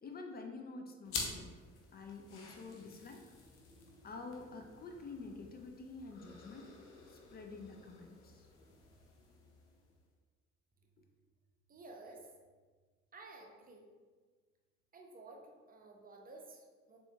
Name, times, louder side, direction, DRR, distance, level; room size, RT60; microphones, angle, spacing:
voice 1, 0.0-1.5 1.9-3.2 4.0-6.7 7.1-8.5, left 3 dB, 25° left, 4 dB, 0.5 m, -48 dB
sound 1, 1.0-10.0, left 4 dB, 70° left, 0.8 m, -49 dB
voice 2, 11.7-12.3 13.1-13.8 14.9-17.0, right 2 dB, 25° right, 1 dB, 0.8 m, -53 dB
6.8 x 2.8 x 2.3 m, 1.4 s
figure-of-eight pair, 50°, 36 cm